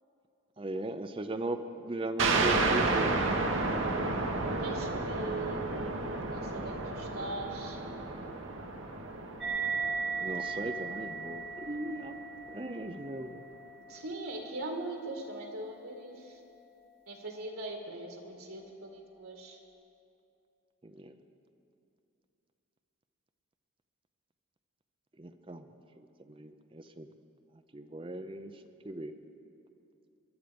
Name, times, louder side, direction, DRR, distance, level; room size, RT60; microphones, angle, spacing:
voice 1, 0.6-3.1 10.2-12.2 12.5-13.4 21.0-21.1 25.2-25.7 26.0-27.1 27.7-28.5 28.8-29.1, right 2 dB, 25° right, 8 dB, 0.5 m, -38 dB
Soft Whitenoise Crash, 2.2-11.4, right 3 dB, 60° right, 1.2 m, -32 dB
voice 2, 4.6-7.8 13.9-16.4 17.1-19.6, right 2 dB, 85° right, 2 dB, 2.0 m, -41 dB
sound 1, 9.4-16.3, right 5 dB, ahead, 1.9 m, -38 dB
21.0 x 11.5 x 5.2 m, 2.7 s
head